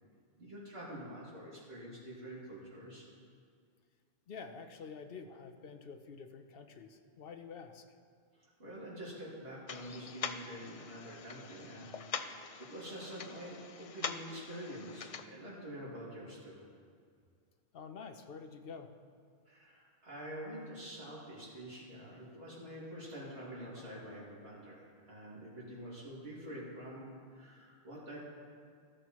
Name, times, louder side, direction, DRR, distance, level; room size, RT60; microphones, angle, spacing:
voice 1, 0.4-3.1 8.6-16.6 19.5-28.2, equal, 80° right, -8 dB, 2.8 m, -47 dB
voice 2, 4.3-7.9 17.7-18.9, left 5 dB, 70° left, 7 dB, 0.9 m, -48 dB
sound 1, 9.7-15.2, left 6 dB, 50° left, 0.4 m, -44 dB
14.0 x 13.0 x 3.1 m, 2.1 s
omnidirectional pair, 1.0 m